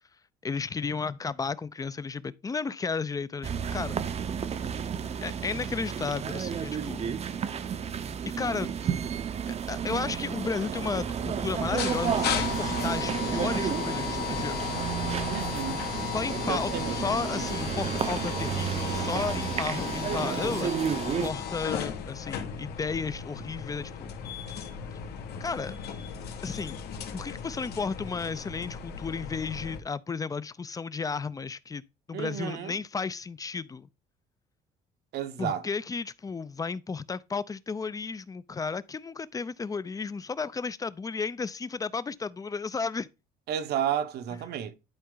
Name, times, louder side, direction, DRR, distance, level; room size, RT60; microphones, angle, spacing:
voice 1, 0.4-4.0 5.2-7.2 8.4-8.7 9.5-14.6 16.1-24.1 25.4-25.8 26.4-26.8 27.1-31.8 32.1-33.9 35.4-43.1, left 5 dB, 20° left, 0.5 m, -33 dB
sound 1, 3.4-21.3, right 7 dB, 40° right, 0.7 m, -32 dB
sound 2, 11.6-29.8, left 7 dB, 75° left, 1.8 m, -35 dB
voice 2, 15.3-17.0 32.1-32.8 35.1-35.7 43.5-44.7, right 9 dB, 75° right, 1.1 m, -32 dB
11.5 x 4.5 x 3.9 m
cardioid pair, 110°, 17 cm